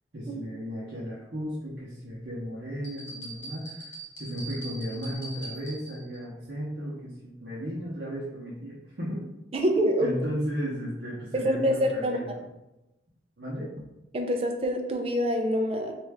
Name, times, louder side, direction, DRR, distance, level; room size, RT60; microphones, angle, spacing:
voice 1, 0.1-9.2 10.0-12.4 13.4-13.7, equal, 70° right, -7 dB, 0.8 m, -35 dB
sound 1, 2.8-6.2, right 2 dB, 75° left, 1.2 m, -42 dB
voice 2, 9.5-10.2 11.3-12.2 14.1-15.9, equal, 30° right, 3 dB, 0.4 m, -26 dB
3.2 x 2.5 x 3.4 m, 0.97 s
head